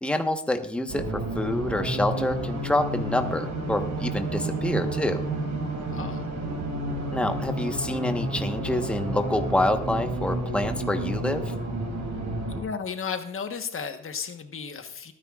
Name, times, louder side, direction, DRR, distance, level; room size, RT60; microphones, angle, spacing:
voice 1, 0.0-5.2 7.1-11.5, left 1 dB, 5° left, 5 dB, 1.2 m, -27 dB
sound 1, 0.9-12.6, right 2 dB, 65° right, 5.6 m, -30 dB
voice 2, 5.9-6.3 12.5-15.1, left 6 dB, 45° left, 8 dB, 1.3 m, -34 dB
22.5 x 9.9 x 2.4 m, 0.68 s
cardioid pair, 90°, 30 cm